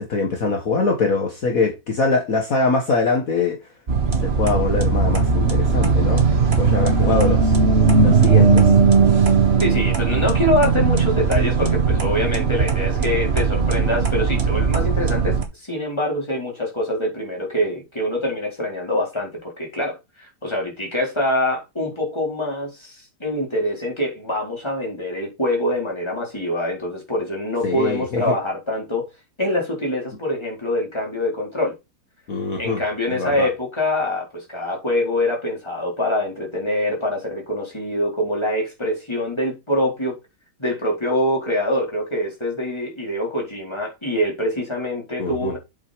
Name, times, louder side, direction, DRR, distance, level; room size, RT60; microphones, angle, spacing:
voice 1, 0.0-3.6 4.2-6.2 6.6-7.6 8.0-8.7 27.6-28.4 32.3-32.8 33.1-33.5 45.2-45.5, left 4 dB, 55° left, 2.2 m, -23 dB
sound 1, 3.9-15.4, right 5 dB, 40° right, 1.8 m, -18 dB
voice 2, 9.6-15.4 15.6-29.1 29.4-31.8 32.6-40.2 40.6-45.6, left 1 dB, 15° left, 4.6 m, -24 dB
8.0 x 6.8 x 5.1 m
omnidirectional pair, 1.8 m